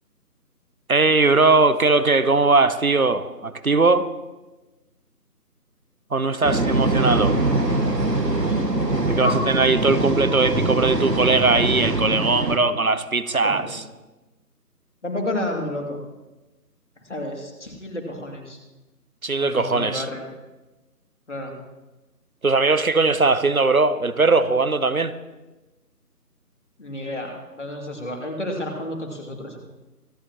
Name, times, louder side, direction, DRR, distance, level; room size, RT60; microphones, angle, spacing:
voice 1, 0.9-4.1 6.1-7.4 9.1-13.8 19.2-20.1 22.4-25.1, right 3 dB, 60° right, 13 dB, 0.9 m, -20 dB
sound 1, 6.4-12.6, right 2 dB, 90° right, 1.9 m, -23 dB
voice 2, 13.4-13.8 15.0-16.0 17.1-18.6 19.4-20.3 21.3-21.6 26.8-29.6, left 1 dB, 45° left, 1 dB, 2.6 m, -30 dB
25.0 x 9.7 x 3.0 m, 1.1 s
figure-of-eight pair, 165°, 48 cm